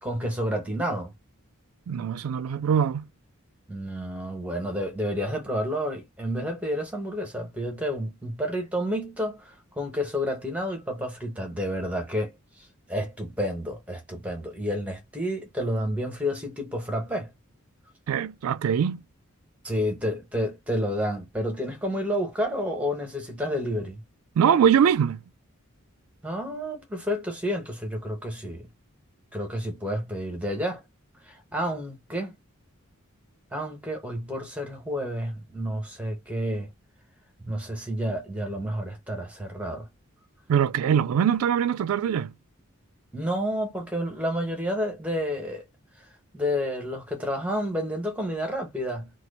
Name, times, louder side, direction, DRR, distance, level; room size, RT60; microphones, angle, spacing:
voice 1, 0.0-1.1 3.7-12.3 12.9-17.3 19.6-24.0 26.2-28.7 29.3-30.8 31.3-32.4 33.5-36.7 37.4-39.9 43.1-45.6 46.3-49.1, equal, 5° right, 1.0 m, -30 dB
voice 2, 1.9-3.1 18.1-19.0 24.4-25.2 40.5-42.3, right 8 dB, 80° right, 0.3 m, -22 dB
2.9 x 2.4 x 4.0 m
head